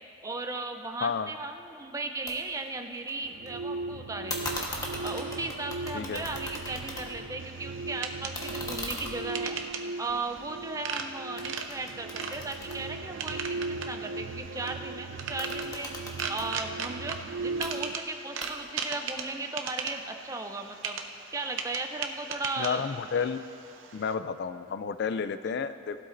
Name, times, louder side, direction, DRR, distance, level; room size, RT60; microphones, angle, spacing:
voice 1, 0.2-4.5 5.0-9.6 10.0-15.9 16.3-17.2 17.4-21.0 21.3-22.8 23.2-23.3, right 3 dB, 15° right, 5 dB, 0.6 m, -36 dB
voice 2, 1.0-1.3 5.9-6.3 22.6-23.4 23.9-26.0, left 6 dB, 55° left, 12 dB, 0.4 m, -31 dB
sound 1, 2.3-2.4 2.7-3.5 4.3-7.4 7.7-11.0 11.4-13.6 15.2-16.5 17.4-17.7 18.4-18.9, left 1 dB, 20° left, 1.3 m, -39 dB
sound 2, 3.2-18.0, right 3 dB, 60° right, 0.3 m, -38 dB
sound 3, 7.4-24.1, right 5 dB, 75° right, 0.7 m, -39 dB
18.5 x 12.5 x 2.6 m, 2.6 s
head